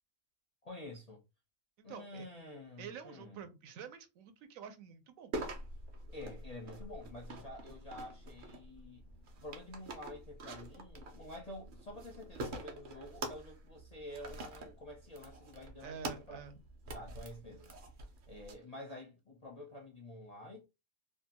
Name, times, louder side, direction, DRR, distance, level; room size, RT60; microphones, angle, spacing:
voice 1, 0.6-1.2 1.8-3.4 6.1-9.0 9.4-16.4 16.9-17.7 18.3-20.7, left 1 dB, 50° left, 0.4 m, -49 dB
voice 2, 1.8-2.2 2.8-5.3 15.8-16.6, right 7 dB, 80° right, 1.0 m, -48 dB
sound 1, 5.3-18.5, right 2 dB, 55° right, 0.5 m, -46 dB
2.7 x 2.2 x 2.7 m
omnidirectional pair, 1.4 m